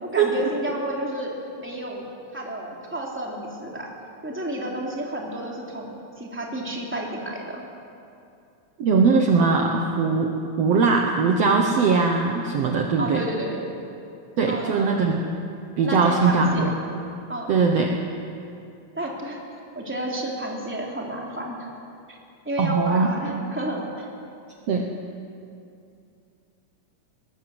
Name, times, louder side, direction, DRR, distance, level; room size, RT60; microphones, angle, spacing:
voice 1, 0.0-2.1 2.3-3.9 4.2-7.6 13.0-13.6 14.5-15.0 15.8-16.7 17.3-17.5 18.9-19.4 19.7-21.7 22.1-22.2 22.4-24.1, right 1 dB, 5° right, -2 dB, 2.9 m, -31 dB
voice 2, 8.8-10.3 10.6-13.2 14.4-15.2 15.8-16.7 17.5-17.9 22.6-23.4 24.7-24.9, right 4 dB, 60° right, 2 dB, 2.0 m, -20 dB
20.0 x 20.0 x 7.9 m, 2.6 s
omnidirectional pair, 3.7 m